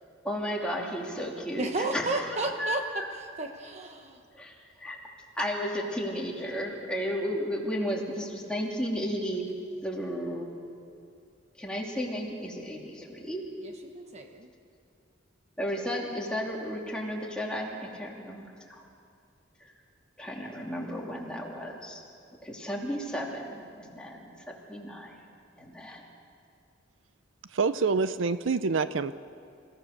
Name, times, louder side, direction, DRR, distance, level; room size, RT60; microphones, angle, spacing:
voice 1, 0.2-3.0 4.3-4.5 4.8-5.0 5.4-9.4 9.8-10.5 11.6-13.4 15.6-18.8 20.2-22.0 22.4-25.1 25.6-26.0, equal, 5° left, -2 dB, 3.0 m, -33 dB
voice 2, 1.6-3.0 3.4-4.2 13.6-14.5, right 2 dB, 35° right, 4 dB, 1.1 m, -33 dB
voice 3, 27.5-29.2, right 4 dB, 80° right, 13 dB, 0.6 m, -26 dB
28.0 x 16.5 x 6.7 m, 2.4 s
head